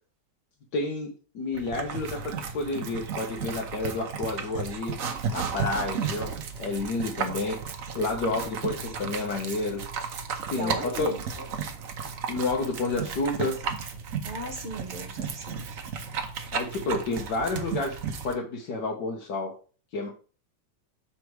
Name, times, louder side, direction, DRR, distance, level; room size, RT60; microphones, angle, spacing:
voice 1, 0.7-4.9 5.3-7.6 7.9-9.8 10.5-11.5 12.3-13.6 16.5-18.0 18.2-19.5 19.9-20.1, left 2 dB, 70° left, 1.7 m, -30 dB
sound 1, 1.5-18.3, right 6 dB, 60° right, 1.1 m, -34 dB
voice 2, 10.5-11.2 14.2-15.7, right 1 dB, 40° right, 1.7 m, -36 dB
6.4 x 4.3 x 4.6 m
omnidirectional pair, 1.9 m